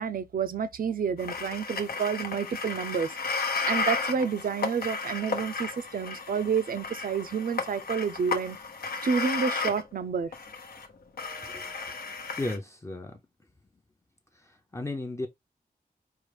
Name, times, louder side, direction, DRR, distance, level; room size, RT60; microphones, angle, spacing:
voice 1, 0.0-3.1 3.6-8.6 9.0-10.3, right 6 dB, 65° right, 0.5 m, -29 dB
sound 1, 1.2-9.8 10.3-10.9 11.2-12.6, left 4 dB, 80° left, 0.9 m, -33 dB
voice 2, 12.4-13.2 14.7-15.3, left 2 dB, 20° left, 0.6 m, -33 dB
4.7 x 2.4 x 3.3 m
wide cardioid pair, 130°, 16 cm